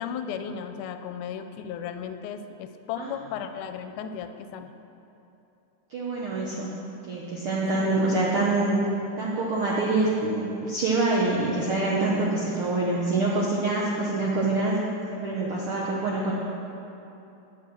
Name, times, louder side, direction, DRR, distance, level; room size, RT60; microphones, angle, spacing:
voice 1, 0.0-4.7 7.7-8.1, left 7 dB, 80° left, 9 dB, 2.0 m, -35 dB
voice 2, 5.9-6.8 7.1-8.8 9.2-14.8 15.1-16.3, right 2 dB, 65° right, -5 dB, 1.4 m, -25 dB
10.5 x 7.0 x 6.1 m, 3.0 s
omnidirectional pair, 3.7 m